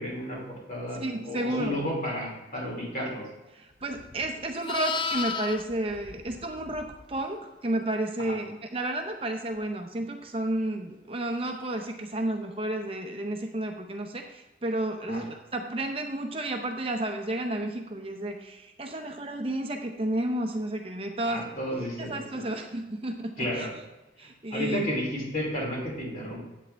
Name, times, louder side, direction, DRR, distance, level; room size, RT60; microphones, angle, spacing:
voice 1, 0.0-3.2 15.1-15.2 21.2-22.5 23.4-23.7 24.5-26.4, equal, 50° left, -3 dB, 3.1 m, -32 dB
voice 2, 0.9-1.8 3.5-21.5 22.0-23.7 24.2-24.9, right 1 dB, 30° right, 3 dB, 0.6 m, -32 dB
Livestock farm animals working animals, 3.9-7.2 11.6-11.8, left 6 dB, 30° left, 0.4 m, -35 dB
8.3 x 8.3 x 3.4 m, 1.1 s
head